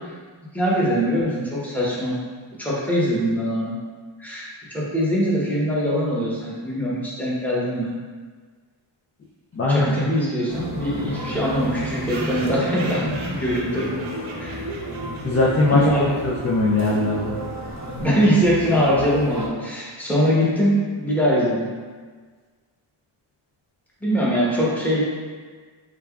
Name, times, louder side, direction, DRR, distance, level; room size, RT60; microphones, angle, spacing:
voice 1, 0.5-2.2 2.6-3.7 4.2-7.9 9.7-13.9 14.4-14.6 15.7-16.0 18.0-21.7 24.0-25.0, equal, 5° left, -7 dB, 0.9 m, -22 dB
voice 2, 9.5-10.0 15.2-17.4, left 2 dB, 35° left, -4 dB, 0.4 m, -21 dB
sound 1, 9.9-10.0 10.2-10.3 10.6-10.7 10.9-11.0 11.6-15.8, right 2 dB, 70° right, 0.7 m, -39 dB
sound 2, 10.5-19.5, equal, 35° right, 0.5 m, -32 dB
3.5 x 3.3 x 2.3 m, 1.5 s
wide cardioid pair, 100°, 48 cm